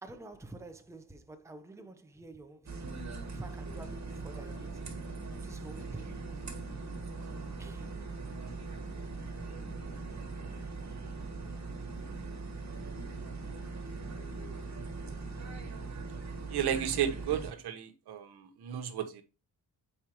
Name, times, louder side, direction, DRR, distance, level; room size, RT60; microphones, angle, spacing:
voice 1, 0.0-2.8 3.3-4.8 5.3-6.2 7.6-7.9, right 2 dB, 5° right, 0.8 m, -48 dB
sound 1, 2.7-17.5, right 3 dB, 45° right, 1.6 m, -40 dB
voice 2, 16.5-19.2, right 9 dB, 75° right, 1.2 m, -33 dB
6.5 x 5.0 x 3.0 m
cardioid pair, 75°, 39 cm